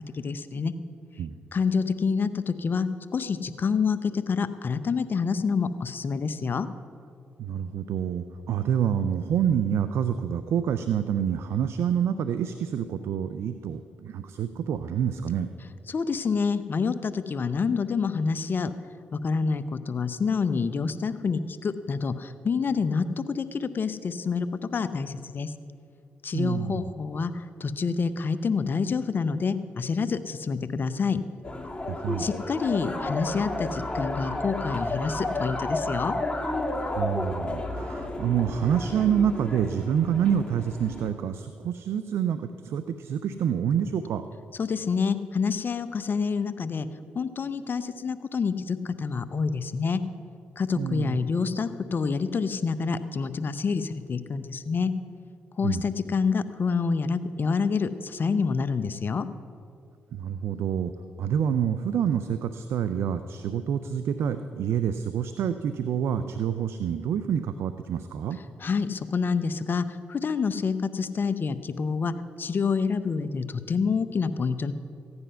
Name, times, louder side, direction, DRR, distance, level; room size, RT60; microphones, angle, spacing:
voice 1, 0.1-0.7 1.5-6.7 15.9-18.7 19.1-24.5 24.7-25.5 26.2-31.2 32.2-36.1 44.6-46.9 47.1-50.0 50.6-54.9 55.6-59.3 68.6-74.7, left 5 dB, 50° left, 12 dB, 0.7 m, -27 dB
voice 2, 7.4-15.5 26.3-26.9 31.9-32.3 37.0-44.3 50.7-51.2 55.6-55.8 60.1-60.9 61.2-68.4, right 8 dB, 75° right, 10 dB, 0.5 m, -27 dB
sound 1, 31.4-41.1, left 2 dB, 20° left, 2.3 m, -32 dB
15.0 x 9.7 x 5.6 m, 2.4 s
supercardioid pair, 50°, 4 cm